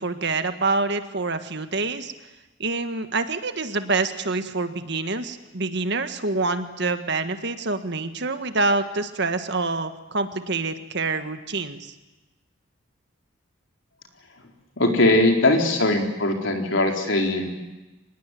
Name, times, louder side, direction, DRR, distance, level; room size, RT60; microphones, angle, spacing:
voice 1, 0.0-2.1 2.6-11.9, right 3 dB, 55° right, 9 dB, 1.7 m, -26 dB
voice 2, 14.8-17.5, left 2 dB, 65° left, 2 dB, 4.1 m, -20 dB
25.5 x 20.0 x 9.3 m, 1.1 s
head